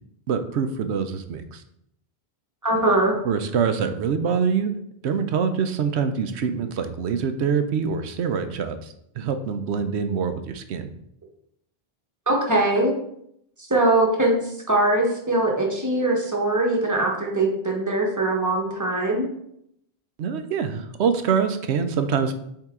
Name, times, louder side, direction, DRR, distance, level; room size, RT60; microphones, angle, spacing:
voice 1, 0.3-1.6 3.2-4.7 5.0-10.9 20.2-22.3, right 6 dB, 80° right, 9 dB, 0.9 m, -25 dB
voice 2, 2.6-3.1 12.3-12.9 13.7-19.3, right 2 dB, 15° right, -1 dB, 1.1 m, -21 dB
7.3 x 3.8 x 3.7 m, 0.74 s
omnidirectional pair, 1.1 m